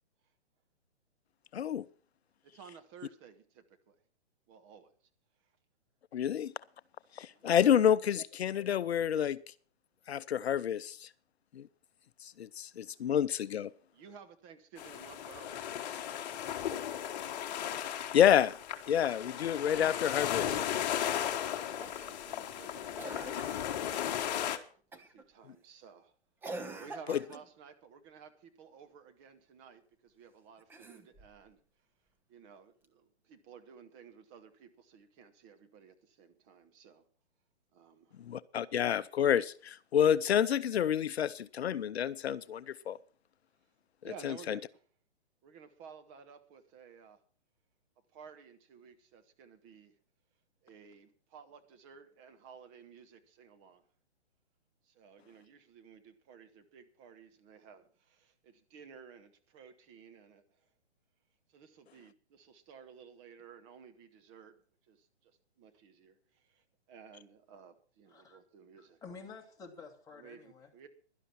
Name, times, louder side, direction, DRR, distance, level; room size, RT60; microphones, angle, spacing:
voice 1, 1.5-1.8 6.1-6.5 7.2-9.4 10.1-11.1 11.6-11.7 12.2-13.7 18.1-18.5 18.9-20.6 27.1-27.2 38.3-43.0 44.2-44.6, left 9 dB, 70° left, 0.6 m, -29 dB
voice 2, 2.5-4.0 4.5-4.9 7.3-7.5 13.9-17.2 21.6-24.5 24.9-26.1 26.5-31.6 32.3-37.0 37.7-38.1 44.0-44.8 45.4-47.2 48.1-49.9 50.6-53.8 54.9-60.4 61.5-64.5 64.9-65.3 65.6-69.0 70.1-70.9, right 6 dB, 30° right, 1.2 m, -55 dB
sound 1, 14.8-24.6, left 10 dB, 40° left, 1.3 m, -36 dB
Cough, 21.8-22.2 23.0-23.7 24.9-25.2 26.4-27.5 30.6-31.4 32.8-32.9, right 2 dB, 5° right, 0.8 m, -45 dB
voice 3, 68.1-68.4 68.8-70.7, left 4 dB, 10° left, 2.1 m, -50 dB
11.5 x 11.5 x 5.8 m
hypercardioid pair, 135°, 33 cm